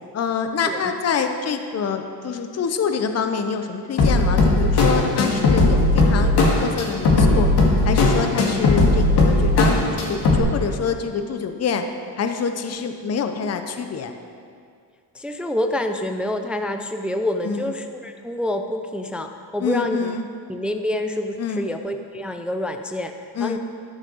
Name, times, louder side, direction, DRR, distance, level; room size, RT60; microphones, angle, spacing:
voice 1, 0.1-7.5 7.8-11.9 12.2-14.1 17.4-17.9 19.6-20.3 21.4-21.7 23.3-23.6, left 6 dB, 35° left, 7 dB, 0.8 m, -26 dB
sound 1, 4.0-10.4, left 2 dB, 65° left, 2.1 m, -17 dB
voice 2, 15.2-20.1 20.5-23.1 23.4-23.6, left 1 dB, 5° right, 6 dB, 0.4 m, -27 dB
13.0 x 6.5 x 6.4 m, 2.3 s
cardioid pair, 115°, 41 cm